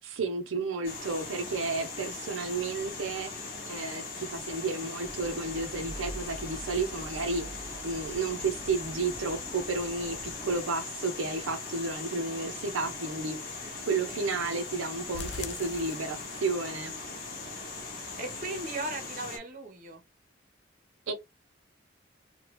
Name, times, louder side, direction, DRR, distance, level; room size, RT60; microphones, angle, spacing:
voice 1, 0.0-16.9 21.1-21.2, right 3 dB, 80° right, 0.5 m, -32 dB
sound 1, 0.8-19.4, left 3 dB, 45° left, 0.7 m, -40 dB
sound 2, 5.0-10.5, equal, 5° left, 0.7 m, -46 dB
sound 3, 15.1-16.7 17.0-17.1 17.5-17.6 18.0-18.1, left 5 dB, 60° left, 0.4 m, -42 dB
voice 2, 18.2-20.0, right 2 dB, 40° right, 0.7 m, -37 dB
2.9 x 2.2 x 3.0 m
head